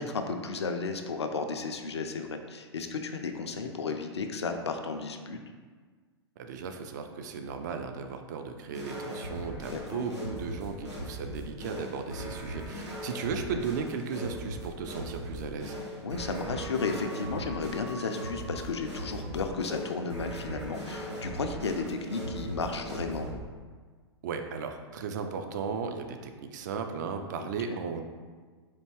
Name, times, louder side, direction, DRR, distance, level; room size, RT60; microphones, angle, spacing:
voice 1, 0.0-5.4 9.7-10.0 16.0-23.3 27.4-27.8, left 4 dB, 70° left, 5 dB, 0.4 m, -34 dB
voice 2, 6.4-15.8 24.2-28.0, right 5 dB, 40° right, 6 dB, 0.4 m, -36 dB
sound 1, 8.7-23.3, equal, 80° right, 1.3 m, -39 dB
4.3 x 2.7 x 3.0 m, 1.5 s
figure-of-eight pair, 105°, 15 cm